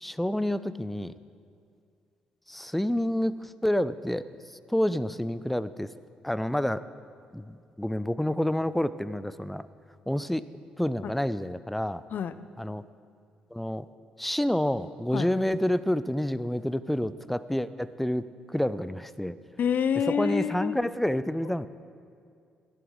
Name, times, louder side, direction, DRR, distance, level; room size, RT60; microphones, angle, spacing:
voice 1, 0.0-1.1 2.5-4.2 4.7-5.9 6.2-6.8 7.3-9.7 10.1-10.4 10.8-12.0 12.6-12.8 13.5-13.9 14.2-19.4 20.1-21.7, left 1 dB, 5° left, 15 dB, 0.4 m, -28 dB
voice 2, 19.6-20.8 21.4-21.5, left 7 dB, 55° left, 14 dB, 0.5 m, -27 dB
13.5 x 11.0 x 3.7 m, 2.4 s
hypercardioid pair, 45°, 4 cm